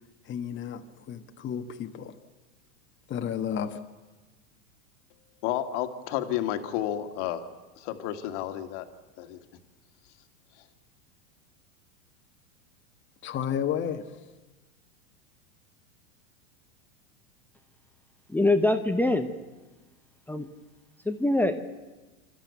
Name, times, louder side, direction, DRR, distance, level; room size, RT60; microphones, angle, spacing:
voice 1, 0.2-2.1 3.1-3.8 13.2-14.1, left 8 dB, 30° left, 5 dB, 1.4 m, -32 dB
voice 2, 5.4-7.5 7.8-8.9 9.2-9.4, left 12 dB, 60° left, 7 dB, 2.0 m, -31 dB
voice 3, 18.3-19.3 20.3-20.5 21.0-21.6, left 2 dB, 5° left, 8 dB, 0.9 m, -24 dB
28.0 x 13.0 x 8.3 m, 1.2 s
hypercardioid pair, 115°, 41 cm